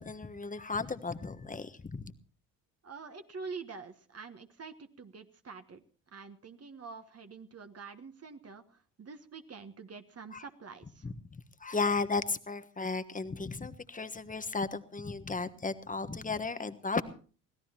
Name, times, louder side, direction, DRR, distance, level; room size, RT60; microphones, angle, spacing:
voice 1, 0.0-2.1 10.3-10.4 11.0-17.0, left 4 dB, 15° left, 11 dB, 1.3 m, -35 dB
voice 2, 2.8-11.1, right 5 dB, 35° right, 7 dB, 1.4 m, -46 dB
24.0 x 17.0 x 2.9 m, 0.40 s
hypercardioid pair, 50°, 45 cm